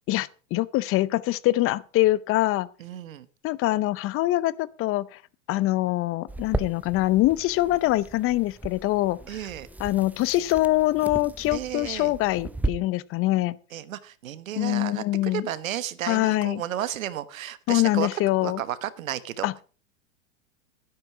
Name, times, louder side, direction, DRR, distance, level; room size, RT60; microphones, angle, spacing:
voice 1, 0.1-2.7 3.4-5.2 5.5-9.4 9.8-13.6 14.5-15.4 16.1-16.6 17.7-18.6 19.4-19.5, left 17 dB, 35° left, 0.7 m, -24 dB
voice 2, 2.8-3.3 9.3-9.7 11.5-12.1 13.7-18.1 18.4-19.6, right 11 dB, 85° right, 1.2 m, -33 dB
sound 1, 6.3-12.7, right 2 dB, 5° right, 0.7 m, -35 dB
12.0 x 10.5 x 4.7 m
hypercardioid pair, 115°, 39 cm